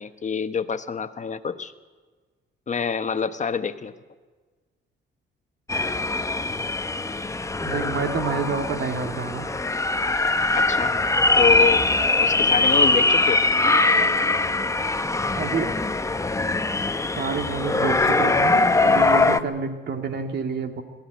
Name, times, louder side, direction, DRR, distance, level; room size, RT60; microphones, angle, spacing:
voice 1, 0.0-1.7 2.7-3.9 10.5-10.9 11.4-11.9 12.2-13.4, left 6 dB, 35° left, 10 dB, 1.2 m, -26 dB
sound 1, 5.7-19.4, left 2 dB, 15° left, 0.9 m, -22 dB
voice 2, 7.6-9.5 15.3-15.7 17.2-20.8, right 5 dB, 60° right, 5 dB, 2.4 m, -28 dB
21.5 x 15.0 x 9.4 m, 1.4 s
cardioid pair, 90°, 20 cm